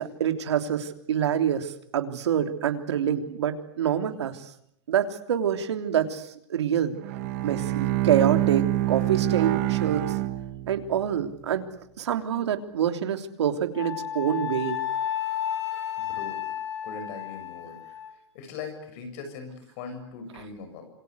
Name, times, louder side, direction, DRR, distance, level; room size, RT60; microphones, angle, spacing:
voice 1, 0.0-4.5 4.9-6.9 7.4-10.0 10.7-11.7 12.0-14.8, right 9 dB, 90° right, 7 dB, 3.3 m, -26 dB
Bowed string instrument, 7.0-11.1, right 15 dB, 35° right, 1.2 m, -26 dB
Wind instrument woodwind instrument, 13.7-18.1, left 10 dB, 90° left, 6.1 m, -32 dB
voice 2, 16.0-16.5 16.8-17.8 18.3-20.9, left 5 dB, 35° left, 8 dB, 6.9 m, -40 dB
27.0 x 26.5 x 8.2 m, 0.72 s
supercardioid pair, 180°, 14 cm